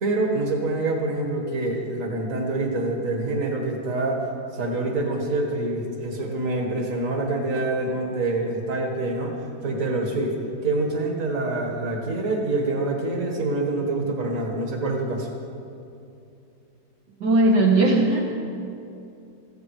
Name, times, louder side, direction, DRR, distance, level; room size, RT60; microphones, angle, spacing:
voice 1, 0.0-4.2 4.5-9.4 9.6-10.4 10.6-15.3, right 2 dB, 45° right, 2 dB, 2.0 m, -26 dB
voice 2, 17.2-18.2, right 2 dB, 65° right, -2 dB, 1.7 m, -18 dB
15.0 x 15.0 x 4.8 m, 2.6 s
omnidirectional pair, 2.0 m